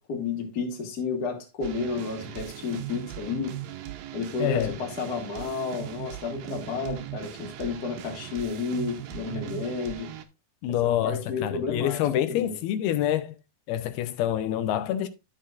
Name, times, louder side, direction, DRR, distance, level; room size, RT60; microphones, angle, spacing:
voice 1, 0.1-3.5 4.1-10.1 10.8-12.6, left 4 dB, 35° left, 1.8 m, -31 dB
sound 1, 1.6-10.2, right 13 dB, 75° right, 2.3 m, -39 dB
voice 2, 4.4-4.7 10.6-13.4 13.7-15.1, left 12 dB, 85° left, 2.6 m, -26 dB
12.0 x 6.6 x 2.5 m
omnidirectional pair, 4.4 m